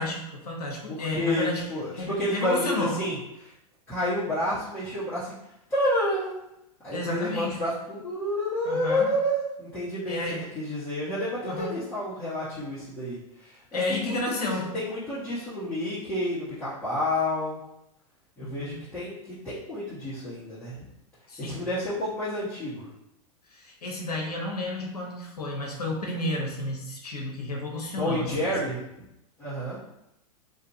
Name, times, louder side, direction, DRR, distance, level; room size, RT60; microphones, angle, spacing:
voice 1, 0.0-1.6 1.9-3.0 6.9-7.6 8.6-9.1 10.1-10.4 11.4-11.8 13.7-14.7 18.4-18.8 21.3-21.6 23.5-28.3 28.6-28.7, left 2 dB, 80° left, -1 dB, 0.8 m, -31 dB
voice 2, 0.9-3.2 3.4-3.5 3.9-5.3 5.7-6.4 6.8-10.2 10.5-17.6 18.4-20.8 21.4-22.9 28.0-28.8 29.4-29.8, left 1 dB, 10° left, -15 dB, 1.1 m, -30 dB
2.6 x 2.4 x 2.7 m, 0.86 s
hypercardioid pair, 105°, 20 cm